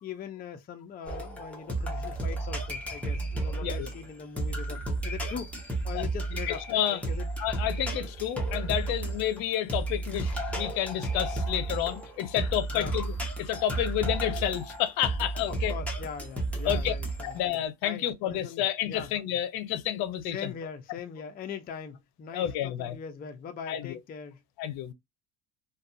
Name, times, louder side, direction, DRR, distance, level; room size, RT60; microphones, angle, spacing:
voice 1, 0.0-5.5 5.8-6.6 6.9-7.2 12.7-12.9 15.5-17.3 17.8-19.1 20.2-24.4, left 7 dB, 25° left, 0.4 m, -41 dB
sound 1, 1.1-17.6, right 2 dB, 5° left, 0.9 m, -33 dB
voice 2, 6.5-7.0 7.4-15.7 16.6-16.9 17.2-20.5 22.3-23.0 23.7-24.0 24.6-24.9, left 11 dB, 65° left, 0.7 m, -30 dB
2.6 x 2.3 x 2.5 m
supercardioid pair, 115°, 39 cm